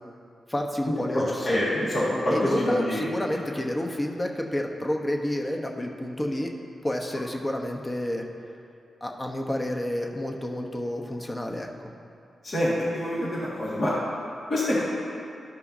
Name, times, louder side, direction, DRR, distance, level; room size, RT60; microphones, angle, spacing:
voice 1, 0.5-1.6 2.3-6.5 6.8-8.2 9.0-11.9, left 1 dB, 25° left, 2 dB, 0.9 m, -29 dB
voice 2, 1.5-3.0 12.4-13.9 14.5-14.8, left 1 dB, 55° left, -7 dB, 1.8 m, -26 dB
13.0 x 5.5 x 2.7 m, 2.6 s
cardioid pair, 65°, 0 cm